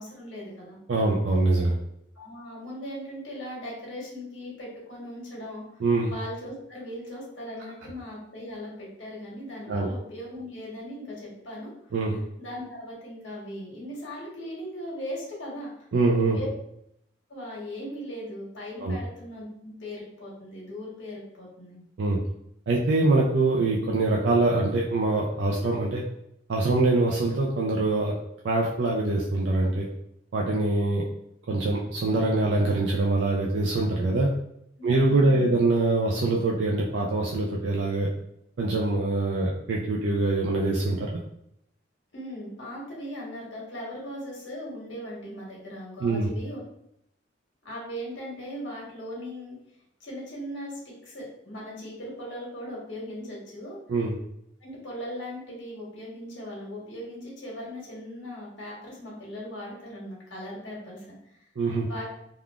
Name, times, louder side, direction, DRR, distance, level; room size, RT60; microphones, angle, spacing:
voice 1, 0.0-0.8 2.1-5.6 6.1-11.7 12.4-15.9 16.2-16.5 17.3-21.8 34.8-35.5 42.1-46.6 47.6-49.6 50.0-53.8 54.6-61.5 61.8-62.1, equal, 80° left, -4 dB, 1.2 m, -39 dB
voice 2, 0.9-1.7 5.8-6.1 9.7-9.9 11.9-12.2 15.9-16.4 18.8-19.0 22.0-22.2 22.7-26.0 26.5-28.1 28.4-29.9 30.3-31.0 31.5-34.3 34.8-38.1 38.6-41.1 46.0-46.3 53.9-54.1 61.6-61.9, right 2 dB, 70° right, -3 dB, 0.4 m, -24 dB
3.5 x 2.3 x 2.3 m, 0.76 s
head